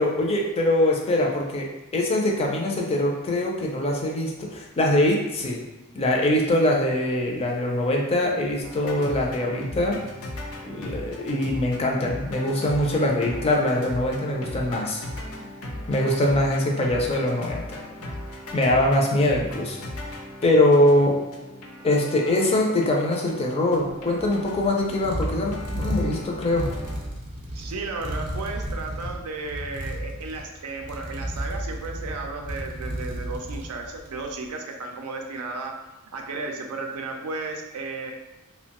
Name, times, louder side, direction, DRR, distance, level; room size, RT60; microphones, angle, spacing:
voice 1, 0.0-1.7 1.9-5.6 5.9-10.0 10.6-15.0 15.9-17.8 18.5-19.8 20.4-21.2 21.8-26.7, left 1 dB, 25° left, -1 dB, 0.4 m, -23 dB
sound 1, 8.6-27.0, left 1 dB, 75° left, 0.5 m, -37 dB
sound 2, 23.9-34.3, right 1 dB, 35° right, 0.5 m, -33 dB
voice 2, 27.5-35.7 36.1-38.1, right 3 dB, 85° right, 3 dB, 0.4 m, -34 dB
2.8 x 2.1 x 2.9 m, 1.0 s
head